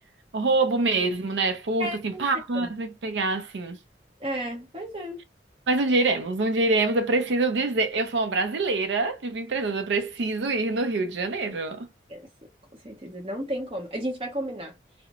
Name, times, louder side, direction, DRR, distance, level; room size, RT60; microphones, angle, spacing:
voice 1, 0.3-3.8 5.7-11.9, right 3 dB, 85° right, 0.5 m, -25 dB
voice 2, 1.8-2.3 2.5-2.7 4.2-5.2 12.1-12.3 12.8-14.7, right 1 dB, 30° right, 0.9 m, -33 dB
2.4 x 2.1 x 2.9 m
head